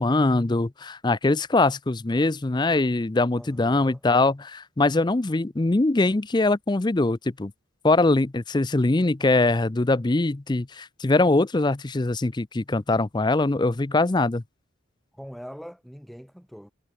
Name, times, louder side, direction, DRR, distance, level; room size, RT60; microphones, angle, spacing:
voice 1, 0.0-7.5 7.8-14.4, left 2 dB, 20° left, 0.5 m, -22 dB
voice 2, 3.3-4.0 15.1-16.7, equal, ahead, 1.7 m, -42 dB
head